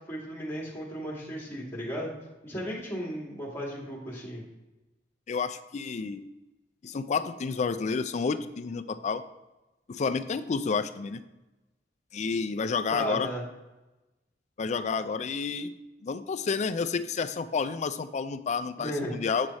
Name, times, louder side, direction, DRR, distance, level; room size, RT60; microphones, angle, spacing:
voice 1, 0.1-2.1 2.4-4.4 12.9-13.4 18.8-19.2, equal, 15° left, -4 dB, 1.7 m, -35 dB
voice 2, 5.3-6.3 6.8-9.2 9.9-11.2 12.1-13.3 14.6-15.7 16.0-19.5, left 5 dB, 40° left, 11 dB, 0.4 m, -30 dB
7.5 x 4.7 x 4.1 m, 1.1 s
head